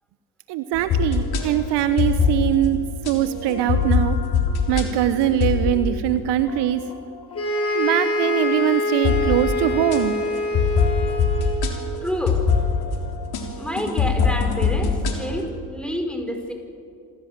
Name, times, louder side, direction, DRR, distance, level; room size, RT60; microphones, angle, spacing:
voice 1, 0.5-2.8 3.1-4.2 4.7-6.8 7.7-10.2, right 12 dB, 60° right, 11 dB, 1.2 m, -22 dB
sound 1, 0.7-6.0 6.5-6.9 7.3-8.3 9.0-15.5, left 5 dB, 55° left, 3.8 m, -24 dB
sound 2, 7.3-11.7, left 1 dB, 30° left, 7.8 m, -25 dB
voice 2, 12.0-12.4 13.6-16.5, equal, ahead, 3 dB, 5.3 m, -28 dB
27.0 x 16.5 x 7.6 m, 2.4 s
hypercardioid pair, 55°, 46 cm